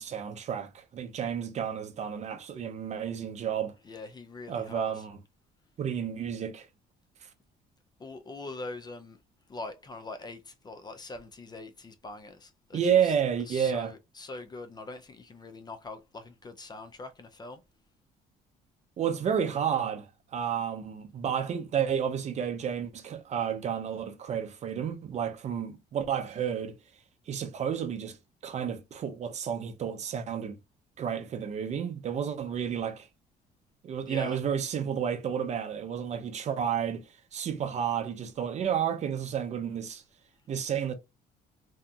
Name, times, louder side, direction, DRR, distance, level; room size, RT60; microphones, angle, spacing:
voice 1, 0.0-3.7 4.5-5.2 5.8-6.7 12.7-13.9 19.0-26.7 27.3-28.2 28.4-30.6 31.0-33.1 33.8-37.0 37.3-40.0 40.5-40.9, right 8 dB, 45° right, 0.5 m, -31 dB
voice 2, 3.8-5.0 8.0-9.2 9.5-13.1 13.5-17.6 34.0-34.4, left 3 dB, 25° left, 0.4 m, -43 dB
2.7 x 2.4 x 2.3 m
cardioid pair, 110°, 17 cm